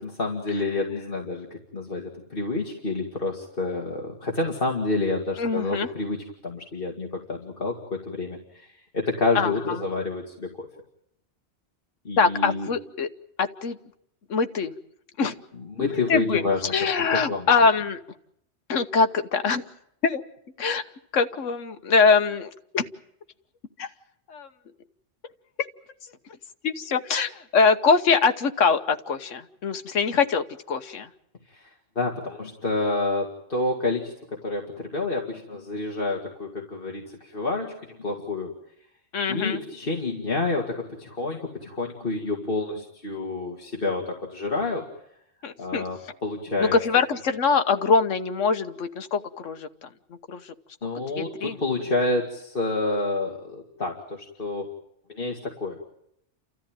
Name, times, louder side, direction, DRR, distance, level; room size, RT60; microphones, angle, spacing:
voice 1, 0.0-1.5 1.7-6.2 6.4-10.5 12.0-12.7 15.6-16.6 17.0-17.5 31.5-31.7 32.0-38.5 39.3-44.8 45.6-46.8 50.8-54.7 55.1-55.8, left 2 dB, 45° left, 0 dB, 2.5 m, -28 dB
voice 2, 5.4-5.9 9.3-9.5 12.2-13.1 13.4-13.8 14.3-14.7 15.2-15.3 15.8-18.0 18.7-19.6 20.0-20.2 20.6-20.8 21.1-22.8 23.8-23.9 24.3-24.5 26.6-31.1 39.1-39.6 45.4-45.8 46.6-49.9 50.3-50.4 51.2-51.6, left 5 dB, 90° left, 8 dB, 1.4 m, -23 dB
29.5 x 14.0 x 9.0 m, 0.77 s
omnidirectional pair, 1.3 m